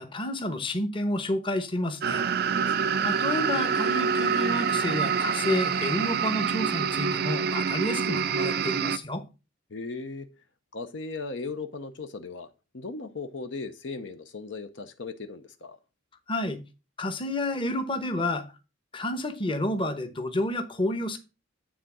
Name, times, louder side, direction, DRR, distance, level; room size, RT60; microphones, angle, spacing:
voice 1, 0.0-2.2 3.0-9.2 16.3-16.6 17.0-18.5 18.9-21.2, left 1 dB, 25° left, 1.0 m, -30 dB
sound 1, 2.0-9.0, right 6 dB, 50° right, 0.4 m, -26 dB
voice 2, 2.4-3.0 9.7-10.3 10.7-12.5 12.7-15.8, left 3 dB, 65° left, 0.7 m, -37 dB
9.3 x 3.7 x 6.1 m
head